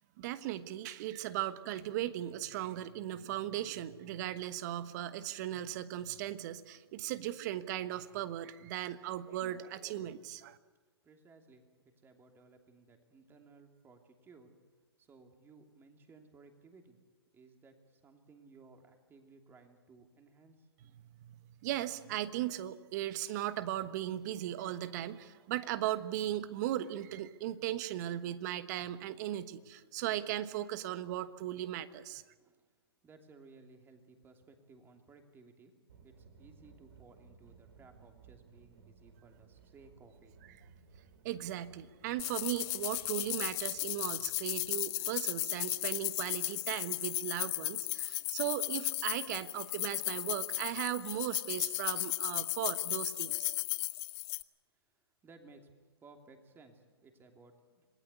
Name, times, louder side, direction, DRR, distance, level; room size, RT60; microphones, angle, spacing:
voice 1, 0.2-10.6 21.0-32.2 41.2-53.6, right 13 dB, 45° right, 13 dB, 1.3 m, -37 dB
voice 2, 11.0-14.6 15.0-17.0 17.3-20.7 32.4-32.7 33.0-35.7 36.0-40.3 54.9-55.0 55.2-55.7 56.0-57.9, right 3 dB, 15° right, 4 dB, 2.9 m, -59 dB
sound 1, 35.9-44.8, right 5 dB, 65° right, 3.5 m, -60 dB
sound 2, 42.2-54.4, left 24 dB, 35° left, 0.7 m, -35 dB
27.0 x 18.5 x 8.4 m, 1.4 s
hypercardioid pair, 125°, 13 cm